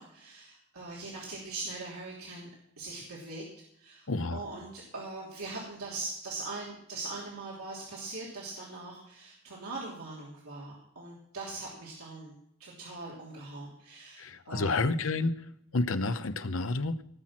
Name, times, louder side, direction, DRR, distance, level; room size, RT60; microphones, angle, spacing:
voice 1, 0.0-2.5 2.8-3.4 3.8-4.1 4.3-14.8, right 3 dB, 85° right, -5 dB, 3.1 m, -41 dB
voice 2, 4.1-4.5 14.2-15.5 15.7-17.0, left 3 dB, 70° left, 10 dB, 0.8 m, -30 dB
18.0 x 6.2 x 7.5 m, 0.73 s
head